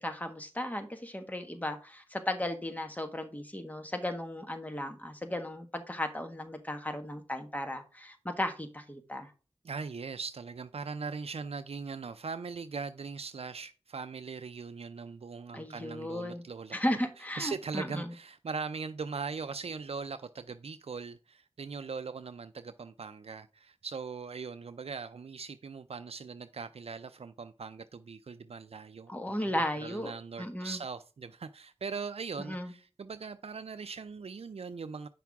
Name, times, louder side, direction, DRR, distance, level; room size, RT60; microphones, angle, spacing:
voice 1, 0.0-9.3 15.5-16.4 16.7-18.1 29.1-30.1 30.4-30.8 32.4-32.7, left 1 dB, 15° left, 1.5 m, -35 dB
voice 2, 9.6-16.8 17.2-29.1 29.8-35.1, right 5 dB, 80° right, 0.4 m, -40 dB
9.1 x 5.9 x 3.6 m
wide cardioid pair, 50°, 10 cm